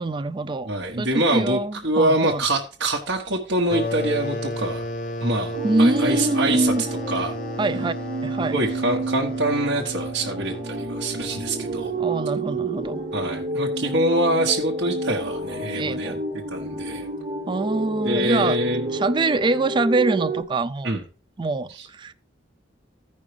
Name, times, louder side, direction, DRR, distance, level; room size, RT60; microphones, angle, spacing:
voice 1, 0.0-0.7 1.0-2.4 5.6-6.8 7.6-7.9 8.2-8.6 12.0-13.0 15.7-16.2 17.5-18.6 18.9-20.9 21.4-22.1, right 2 dB, 25° right, 0.3 m, -24 dB
voice 2, 0.6-4.9 5.2-6.7 7.1-7.3 8.4-11.9 13.1-16.1 16.5-17.1 18.0-18.9 20.8-21.0 21.7-21.9, right 1 dB, 70° right, 1.1 m, -25 dB
sound 1, 3.7-12.1, left 1 dB, 50° left, 0.9 m, -33 dB
sound 2, 5.5-20.4, right 2 dB, 45° right, 1.3 m, -29 dB
15.0 x 5.4 x 3.2 m
head